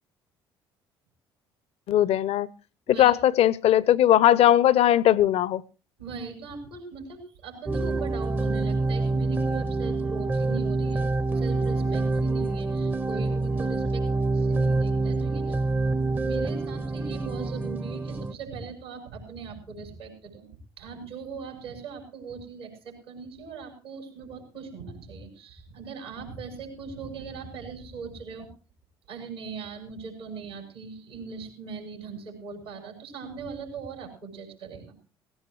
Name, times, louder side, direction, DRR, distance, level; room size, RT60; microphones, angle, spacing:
voice 1, 1.9-2.5 3.0-5.6, left 12 dB, 55° left, 0.7 m, -19 dB
voice 2, 6.0-11.1 11.3-14.1 14.3-15.9 16.2-20.5 20.8-28.5 29.1-35.0, right 5 dB, 85° right, 6.0 m, -40 dB
sound 1, 7.7-18.3, right 3 dB, 15° right, 0.6 m, -26 dB
17.0 x 17.0 x 3.2 m
figure-of-eight pair, 55°, 13 cm